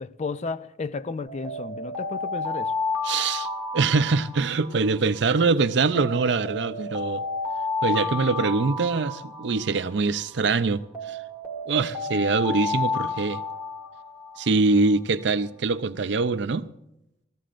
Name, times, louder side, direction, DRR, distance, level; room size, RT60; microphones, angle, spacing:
voice 1, 0.0-2.7, left 4 dB, 40° left, 0.4 m, -33 dB
Alarm, 1.3-5.4 5.9-10.4 10.9-14.7, left 3 dB, 10° right, 1.7 m, -31 dB
voice 2, 3.0-3.5 3.7-7.2 7.8-11.2 11.7-13.4 14.4-16.7, right 4 dB, 70° right, 0.5 m, -23 dB
19.0 x 14.5 x 2.5 m
head